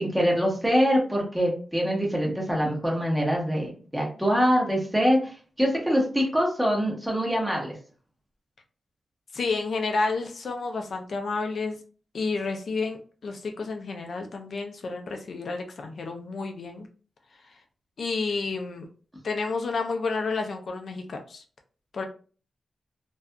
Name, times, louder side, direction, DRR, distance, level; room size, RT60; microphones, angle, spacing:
voice 1, 0.0-7.8, equal, 5° right, -1 dB, 0.9 m, -24 dB
voice 2, 9.3-11.8 12.1-16.9 18.0-18.9 19.2-21.4 21.9-22.0, left 4 dB, 65° left, 4 dB, 0.4 m, -30 dB
2.6 x 2.3 x 2.2 m, 0.39 s
wide cardioid pair, 115°, 0 cm